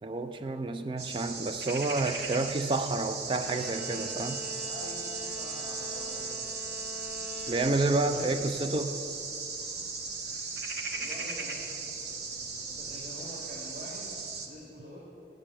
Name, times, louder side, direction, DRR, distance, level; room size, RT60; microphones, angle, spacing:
voice 1, 0.0-4.4 7.5-9.0, right 2 dB, 25° right, 9 dB, 0.3 m, -29 dB
sound 1, 1.0-14.5, right 4 dB, 65° right, 1.0 m, -37 dB
Bowed string instrument, 3.4-8.1, left 2 dB, 5° left, 3.0 m, -45 dB
voice 2, 4.6-6.4 7.9-8.5 10.9-14.1 14.5-15.0, equal, 45° right, -6 dB, 1.7 m, -46 dB
8.6 x 7.3 x 7.5 m, 2.7 s
head